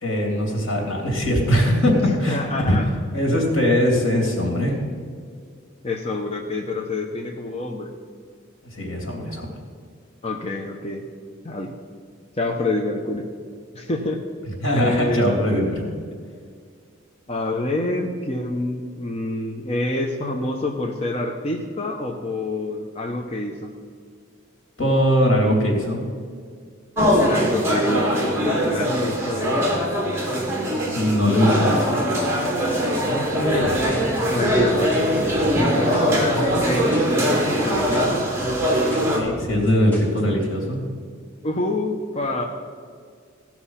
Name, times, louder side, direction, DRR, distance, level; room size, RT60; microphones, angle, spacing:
voice 1, 0.0-2.8 3.1-4.8 8.7-9.5 14.6-15.8 24.8-26.1 30.9-32.0 39.1-40.8, equal, 85° left, 1 dB, 2.8 m, -21 dB
voice 2, 2.3-2.8 5.8-7.9 10.2-11.1 11.4-11.7 12.4-13.3 13.7-14.2 14.7-15.6 17.3-23.7 27.2-29.8 33.1-34.9 35.6-38.3 41.4-42.5, left 2 dB, 30° left, 2 dB, 0.8 m, -27 dB
sound 1, 27.0-39.2, equal, 15° right, 1.8 m, -22 dB
sound 2, 32.9-40.5, equal, 10° left, 1.7 m, -36 dB
16.5 x 6.0 x 5.7 m, 2.1 s
head